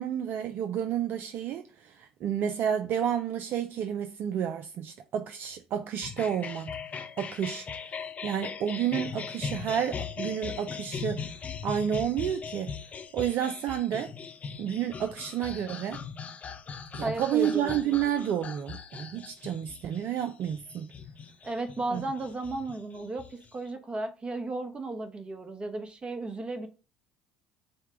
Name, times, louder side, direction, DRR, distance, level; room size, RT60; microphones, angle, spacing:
voice 1, 0.0-6.8 7.2-7.7 7.9-11.3 11.6-12.7 13.1-14.1 14.6-16.0 16.9-20.9 21.9-22.0, right 9 dB, 55° right, 0.4 m, -30 dB
sound 1, 6.0-23.7, left 6 dB, 40° left, 0.6 m, -40 dB
voice 2, 17.0-18.0 21.4-26.7, right 2 dB, 25° right, 1.0 m, -34 dB
6.2 x 2.2 x 3.7 m
hypercardioid pair, 65°, 4 cm